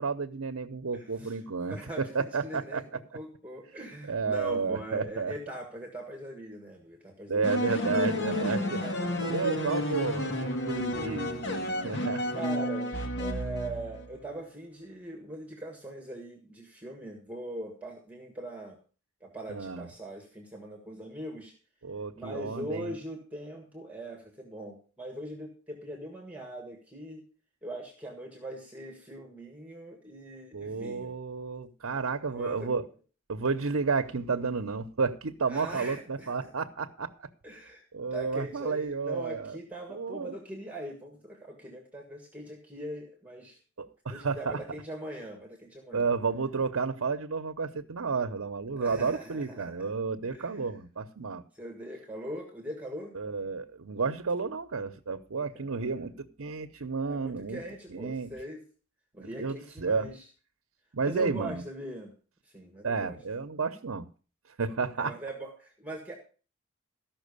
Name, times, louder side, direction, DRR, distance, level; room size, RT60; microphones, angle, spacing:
voice 1, 0.0-2.8 4.1-5.3 7.3-8.8 9.3-11.4 11.8-12.2 19.5-19.9 21.8-22.9 30.5-32.8 33.3-37.3 37.9-39.6 39.9-40.3 43.8-44.6 45.9-51.4 53.1-57.6 57.9-58.3 59.2-60.1 60.9-61.6 62.8-64.1 64.6-65.1, right 4 dB, 85° right, 8 dB, 0.8 m, -31 dB
voice 2, 0.9-1.4 1.7-2.2 2.4-2.8 3.1-7.6 8.2-9.4 10.0-10.1 12.3-18.8 19.2-21.5 22.1-27.2 27.6-31.2 32.3-32.7 35.5-36.5 37.4-37.8 38.1-43.6 44.1-46.1 48.8-49.9 50.3-50.6 51.5-53.2 55.5-56.0 57.0-58.6 59.1-60.2 61.0-62.1 62.4-63.2 65.0-66.1, right 1 dB, 5° right, 2 dB, 1.7 m, -41 dB
sound 1, 7.4-14.1, left 1 dB, 60° left, 1.9 m, -31 dB
14.0 x 5.9 x 6.7 m, 0.38 s
head